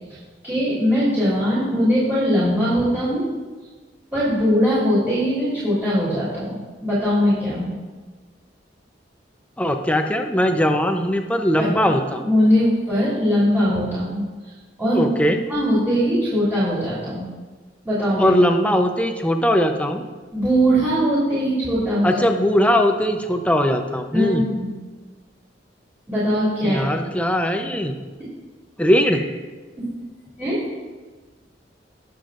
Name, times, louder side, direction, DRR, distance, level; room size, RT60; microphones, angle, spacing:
voice 1, 0.4-3.2 4.1-6.6 6.8-7.8 11.6-11.7 12.2-14.2 14.8-15.0 15.5-17.3 17.8-18.3 20.3-22.1 24.1-24.7 26.1-26.9 29.8-29.9 30.4-30.6, equal, 10° right, -10 dB, 3.1 m, -20 dB
voice 2, 9.6-12.2 14.9-15.4 18.2-20.1 22.0-24.4 26.6-27.9 28.8-29.2, equal, 10° left, 5 dB, 0.7 m, -20 dB
19.5 x 7.1 x 2.5 m, 1.3 s
head